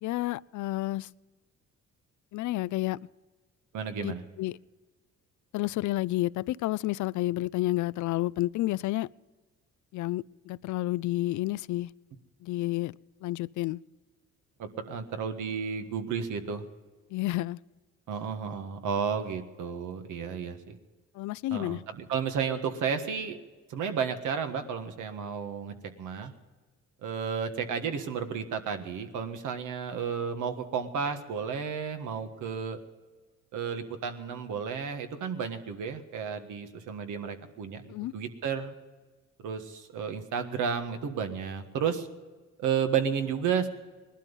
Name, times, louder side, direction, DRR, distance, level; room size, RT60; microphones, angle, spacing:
voice 1, 0.0-1.1 2.3-3.0 4.0-4.1 4.4-4.6 5.5-9.1 9.9-11.9 12.4-13.0 13.2-13.8 17.1-17.6 21.1-21.8 37.9-38.1, left 17 dB, 75° left, 21 dB, 0.4 m, -30 dB
voice 2, 3.7-4.2 14.6-16.6 18.1-20.8 21.5-23.4 23.7-26.3 27.0-32.8 33.5-38.7 39.4-42.1 42.6-43.7, right 6 dB, 80° right, 7 dB, 1.6 m, -32 dB
20.0 x 12.0 x 5.5 m, 1.3 s
cardioid pair, 90°, 30 cm